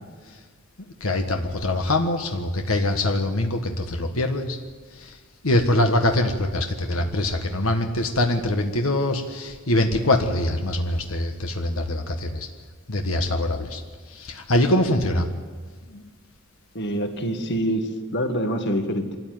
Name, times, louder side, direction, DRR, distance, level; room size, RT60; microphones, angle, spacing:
voice 1, 1.0-4.6 5.0-5.1 5.4-12.5 12.9-13.8 14.1-15.3 15.9-16.0, left 1 dB, 80° left, 4 dB, 1.5 m, -23 dB
voice 2, 16.8-19.2, equal, 55° left, 6 dB, 1.8 m, -26 dB
24.5 x 14.0 x 9.5 m, 1.5 s
head